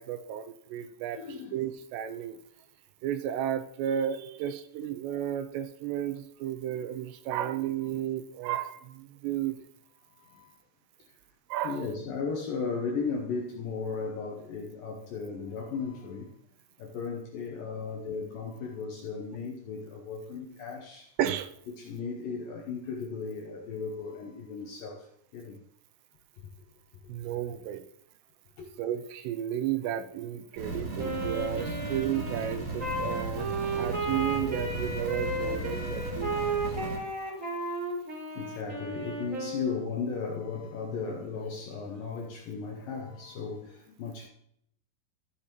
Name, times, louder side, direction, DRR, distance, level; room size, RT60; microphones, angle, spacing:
voice 1, 0.0-1.2 1.5-2.4 3.0-9.5 11.5-11.9 21.2-21.5 27.1-27.8 28.8-33.5 33.8-36.3, right 10 dB, 85° right, 2.7 m, -33 dB
voice 2, 1.2-1.5 10.2-10.5 11.6-16.3 16.8-21.1 21.7-25.1 25.3-25.6 28.6-28.7 35.4-35.7 38.4-44.3, left 5 dB, 80° left, 2.1 m, -36 dB
sound 1, 30.6-37.0, right 2 dB, 40° right, 3.1 m, -36 dB
Wind instrument woodwind instrument, 31.0-40.0, right 2 dB, 20° right, 2.8 m, -34 dB
13.5 x 8.5 x 3.0 m
omnidirectional pair, 5.1 m